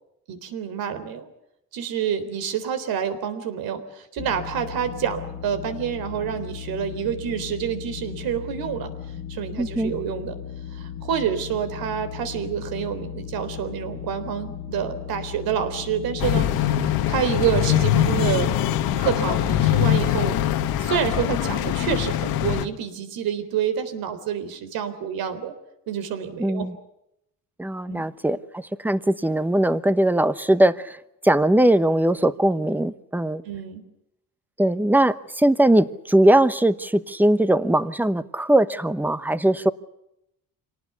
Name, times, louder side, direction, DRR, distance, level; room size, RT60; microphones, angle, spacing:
voice 1, 0.3-1.3 1.7-8.9 9.3-10.4 10.7-18.5 19.0-20.4 20.8-25.5 25.9-26.7 27.9-28.1 33.4-33.8, right 8 dB, 85° right, 10 dB, 3.9 m, -28 dB
sound 1, 4.2-20.5, left 9 dB, 70° left, 1.8 m, -36 dB
voice 2, 9.6-9.9 26.4-26.7 27.6-31.0 31.2-33.4 34.6-39.7, right 1 dB, 5° right, 14 dB, 1.0 m, -20 dB
sound 2, 16.2-22.7, left 11 dB, 90° left, 1.7 m, -22 dB
26.5 x 19.0 x 8.3 m, 0.83 s
cardioid pair, 140°, 35 cm